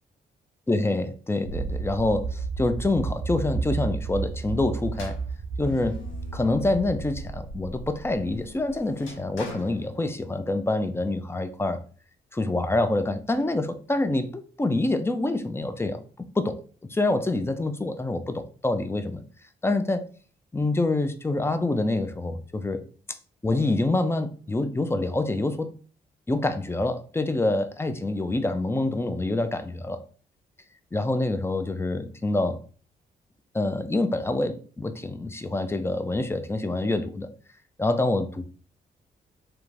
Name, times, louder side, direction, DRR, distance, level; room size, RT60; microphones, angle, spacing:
voice 1, 0.7-5.2 5.6-6.0 6.3-11.8 12.3-16.0 16.4-16.6 16.9-19.2 19.6-20.1 20.5-22.8 23.4-25.7 26.3-30.0 30.9-32.6 33.5-37.3 37.8-38.4, left 2 dB, 10° left, 0.4 m, -26 dB
sound 1, 1.4-9.5, right 4 dB, 70° right, 0.6 m, -33 dB
sound 2, 4.9-7.3 7.8-10.6, left 1 dB, 85° left, 0.7 m, -43 dB
3.0 x 2.2 x 2.5 m
supercardioid pair, 50°, 20 cm